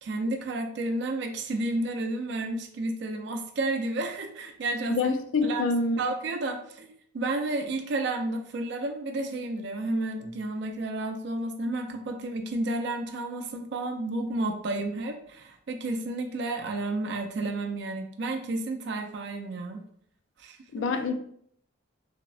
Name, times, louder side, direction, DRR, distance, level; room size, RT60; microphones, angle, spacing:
voice 1, 0.0-5.0 5.4-5.6 6.0-19.8 20.4-20.9, right 2 dB, 55° right, 4 dB, 0.4 m, -31 dB
voice 2, 4.9-6.0 20.7-21.2, left 3 dB, 70° left, 7 dB, 0.3 m, -26 dB
3.4 x 2.0 x 2.3 m, 0.66 s
head